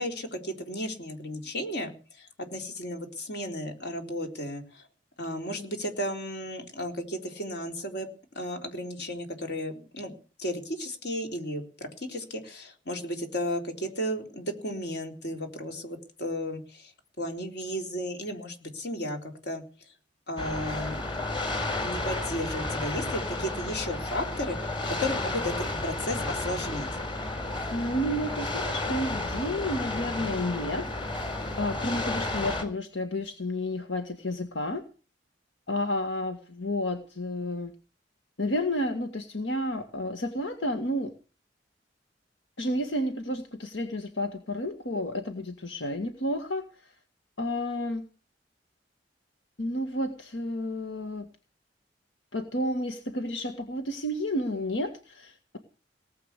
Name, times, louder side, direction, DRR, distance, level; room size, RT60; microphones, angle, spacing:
voice 1, 0.0-4.9 5.2-8.1 8.3-10.1 10.4-16.9 17.2-19.9 20.3-21.0 21.4-26.9, equal, 65° left, 4 dB, 3.9 m, -34 dB
sound 1, 20.4-32.6, left 2 dB, 30° left, 4.0 m, -32 dB
voice 2, 27.7-30.9 31.6-34.8 35.7-37.7 38.4-41.1 42.6-46.9 47.4-48.0 49.6-51.3 52.3-55.6, left 1 dB, 85° left, 6 dB, 1.8 m, -31 dB
19.0 x 8.3 x 8.3 m, 0.36 s
head